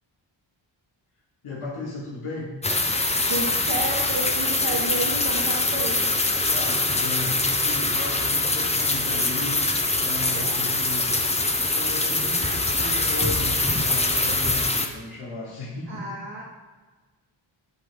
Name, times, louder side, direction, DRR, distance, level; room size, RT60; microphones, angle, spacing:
voice 1, 1.4-2.6 6.5-9.6 10.0-11.2 11.7-16.2, left 3 dB, 85° left, -5 dB, 1.5 m, -35 dB
sound 1, 2.6-14.9, left 2 dB, 15° left, 0.7 m, -23 dB
voice 2, 3.3-6.1 10.3-10.6 15.9-16.4, right 2 dB, 60° right, -3 dB, 1.8 m, -31 dB
7.9 x 3.3 x 3.8 m, 1.3 s
cardioid pair, 45°, 49 cm